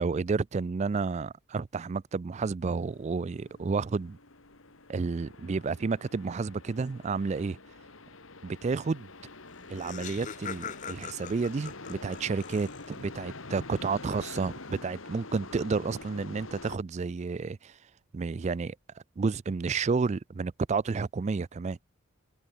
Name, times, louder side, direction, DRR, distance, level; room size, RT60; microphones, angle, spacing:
voice 1, 0.0-4.2 4.9-7.6 8.4-9.1 9.7-17.8 18.1-18.8 19.2-21.8, right 4 dB, 30° right, 0.3 m, -31 dB
sound 1, 2.6-16.8, left 3 dB, 70° left, 2.4 m, -46 dB
Laughter, 9.2-9.3 9.5-13.1, left 6 dB, 35° left, 0.8 m, -42 dB
head